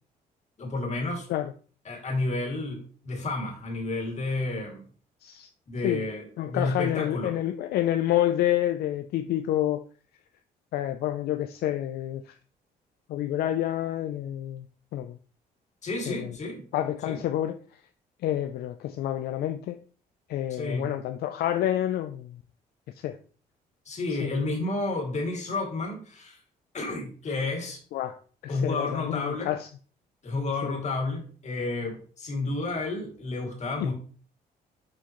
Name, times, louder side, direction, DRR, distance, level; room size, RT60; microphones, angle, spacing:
voice 1, 0.6-1.3 1.9-4.8 5.7-7.3 15.8-16.6 17.0-17.2 20.5-20.9 23.9-26.4 26.7-27.8 28.5-29.5 30.2-33.9, left 2 dB, 45° left, 2.3 m, -31 dB
voice 2, 6.4-9.8 10.7-12.4 13.1-14.7 14.9-15.2 16.1-16.4 16.7-17.6 18.2-19.8 20.3-22.4 22.9-23.2 24.1-24.3 27.9-29.7 30.6-30.7 33.8-33.9, left 12 dB, 75° left, 0.4 m, -28 dB
7.1 x 4.7 x 3.0 m
cardioid pair, 90°, 16 cm